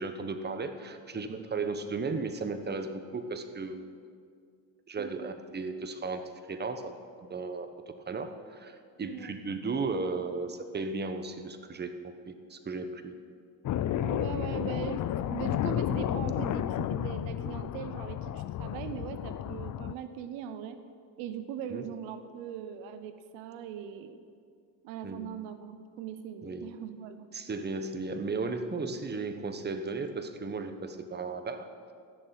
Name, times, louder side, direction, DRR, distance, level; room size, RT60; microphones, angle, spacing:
voice 1, 0.0-3.8 4.9-6.2 6.5-6.9 7.3-11.9 12.3-13.1 21.7-21.9 25.0-25.3 26.4-26.7 27.3-31.7, right 3 dB, 20° right, 8 dB, 1.1 m, -35 dB
voice 2, 5.0-5.3 9.0-9.5 14.0-20.8 21.2-24.2 24.8-27.3, right 8 dB, 85° right, 10 dB, 1.0 m, -40 dB
sound 1, 13.6-19.9, left 11 dB, 45° left, 0.5 m, -32 dB
15.0 x 6.9 x 9.2 m, 2.2 s
supercardioid pair, 95°, 45 cm